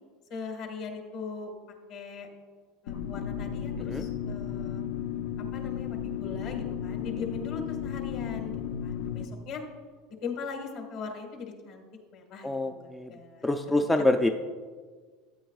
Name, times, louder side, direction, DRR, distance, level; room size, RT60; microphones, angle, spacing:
voice 1, 0.3-1.5 1.9-2.3 2.8-4.8 5.5-8.5 8.8-9.6 10.2-11.8 12.1-13.5, left 5 dB, 45° left, 4 dB, 1.5 m, -40 dB
sound 1, 2.9-9.3, left 9 dB, 85° left, 0.7 m, -34 dB
voice 2, 12.4-13.1 13.4-14.3, left 2 dB, 5° left, 5 dB, 0.3 m, -26 dB
13.5 x 8.8 x 2.4 m, 1.5 s
supercardioid pair, 160°, 0 cm